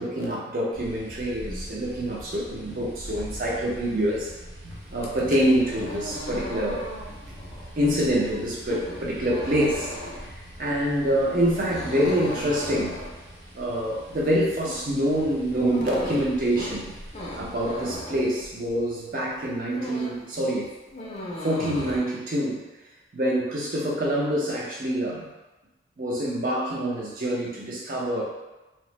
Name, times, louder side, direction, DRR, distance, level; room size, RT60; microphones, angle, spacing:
voice 1, 0.0-4.3 4.9-6.8 7.7-9.9 10.6-13.0 13.5-16.9 17.4-20.7 21.4-22.6 23.1-25.3 26.0-28.2, equal, 45° right, -3 dB, 0.5 m, -26 dB
sound 1, 0.7-18.0, equal, 85° right, 0.7 m, -43 dB
sound 2, 4.9-19.0 19.3-20.3 20.6-22.0, left 1 dB, 30° left, 0.4 m, -38 dB
2.9 x 2.0 x 3.0 m, 1.1 s
head